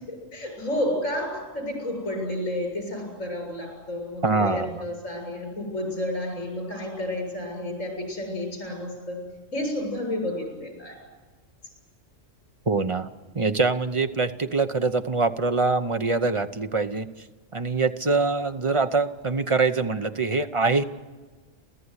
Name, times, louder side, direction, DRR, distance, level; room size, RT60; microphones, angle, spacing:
voice 1, 0.3-9.2 9.5-10.9, left 1 dB, 85° left, 2 dB, 8.0 m, -31 dB
voice 2, 4.2-4.8 12.7-13.1 13.3-17.1 17.5-20.8, right 3 dB, 30° right, 8 dB, 0.8 m, -24 dB
29.5 x 14.0 x 9.8 m, 1.3 s
omnidirectional pair, 1.3 m